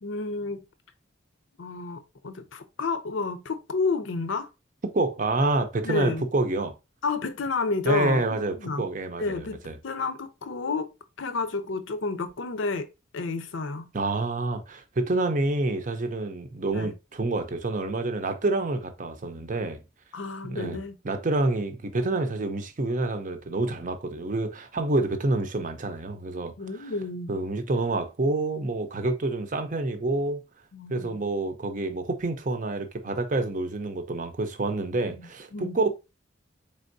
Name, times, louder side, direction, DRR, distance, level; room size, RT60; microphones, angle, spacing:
voice 1, 0.0-0.6 1.6-4.5 5.8-6.3 7.0-8.2 8.6-8.9 9.2-9.6 9.8-12.9 13.1-13.9 16.7-16.9 20.1-21.0 26.6-27.4 30.7-31.2 35.1-35.8, left 3 dB, 70° left, 0.6 m, -30 dB
voice 2, 4.9-6.7 7.8-9.4 9.6-9.8 13.9-19.8 20.5-20.8 21.0-26.9 27.3-30.4 30.9-35.9, right 2 dB, 40° right, 0.6 m, -28 dB
4.4 x 3.5 x 2.6 m
head